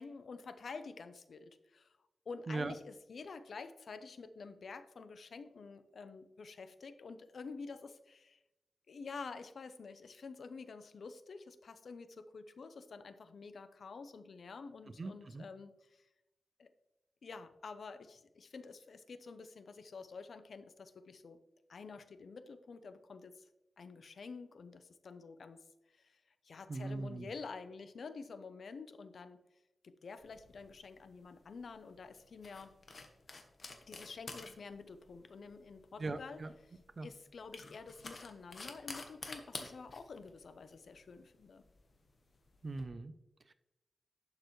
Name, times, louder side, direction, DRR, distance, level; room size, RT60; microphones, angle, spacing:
voice 1, 0.0-2.0 2.3-8.4 8.9-16.1 16.6-16.7 17.2-21.4 21.7-23.5 23.8-29.4 29.8-32.8 33.8-36.4 37.0-41.6, left 4 dB, 65° left, 11 dB, 0.6 m, -49 dB
voice 2, 15.0-15.5 26.7-27.3 36.0-36.5 37.0-37.1 42.6-43.1 43.5-43.6, right 3 dB, 40° right, 12 dB, 0.5 m, -40 dB
sound 1, 30.2-42.8, left 3 dB, 45° left, 1.2 m, -51 dB
11.5 x 6.6 x 3.1 m, 0.95 s
wide cardioid pair, 125°, 0 cm